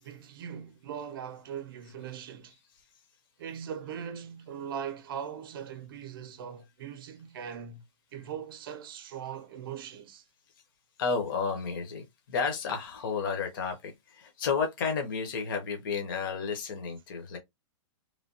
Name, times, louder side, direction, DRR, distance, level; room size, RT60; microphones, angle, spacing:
voice 1, 0.0-2.5 3.4-7.8 8.1-10.2, right 8 dB, 50° right, 0.6 m, -40 dB
voice 2, 11.0-17.4, left 5 dB, 45° left, 0.9 m, -32 dB
3.2 x 2.2 x 2.7 m
hypercardioid pair, 180°, 15 cm